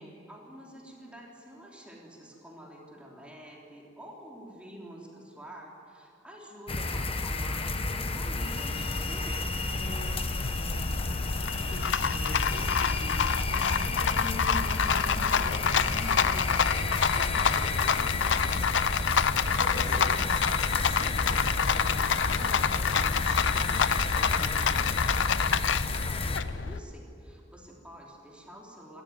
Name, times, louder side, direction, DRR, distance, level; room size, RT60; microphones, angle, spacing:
voice 1, 0.0-9.4 19.7-20.3 26.0-29.0, equal, 5° right, -3 dB, 3.5 m, -47 dB
sound 1, 6.7-26.4, left 2 dB, 30° left, 1.2 m, -31 dB
Rattle, 8.2-26.8, left 6 dB, 85° left, 0.6 m, -28 dB
voice 2, 9.5-24.9, left 1 dB, 50° left, -1 dB, 4.8 m, -43 dB
29.5 x 13.5 x 9.5 m, 2.6 s
head